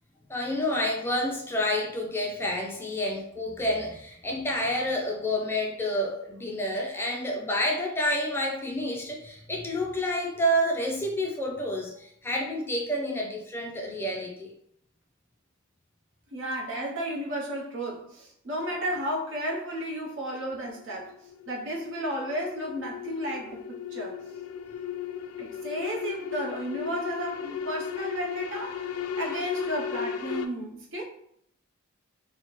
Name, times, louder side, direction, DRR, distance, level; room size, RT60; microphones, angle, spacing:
voice 1, 0.3-14.5, equal, 10° left, -1 dB, 0.4 m, -29 dB
voice 2, 16.3-21.1 21.5-24.2 25.4-28.9 29.2-31.0, equal, 60° right, -1 dB, 0.8 m, -33 dB
sound 1, 19.9-30.5, left 7 dB, 85° left, 0.4 m, -36 dB
4.1 x 2.1 x 3.0 m, 0.71 s
head